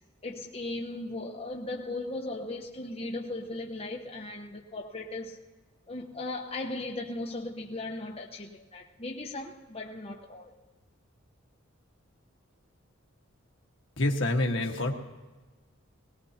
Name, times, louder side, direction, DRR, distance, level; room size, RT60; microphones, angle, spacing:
voice 1, 0.2-5.4 5.9-10.5, left 2 dB, 30° left, -1 dB, 1.1 m, -37 dB
voice 2, 14.0-14.9, left 2 dB, 60° left, 2 dB, 1.6 m, -27 dB
22.5 x 19.0 x 2.9 m, 1.2 s
head